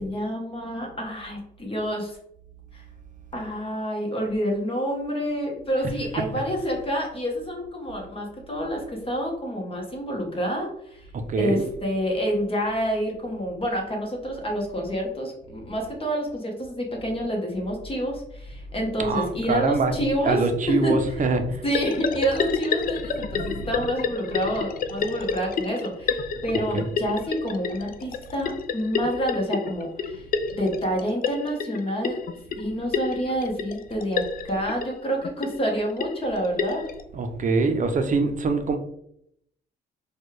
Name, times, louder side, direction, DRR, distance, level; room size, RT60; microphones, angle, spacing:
voice 1, 0.0-2.2 2.7-2.8 3.3-11.0 11.4-20.9 21.6-30.2 30.6-32.2 32.6-36.9, equal, 30° left, 1.1 m, -28 dB
voice 2, 11.1-11.6 19.0-19.9 20.2-21.6 23.3-23.7 26.5-26.9 37.1-38.8, right 3 dB, 40° right, 0.6 m, -24 dB
sound 1, 21.7-37.0, left 5 dB, 45° left, 0.4 m, -29 dB
4.2 x 2.4 x 3.2 m
cardioid pair, 90°, 20 cm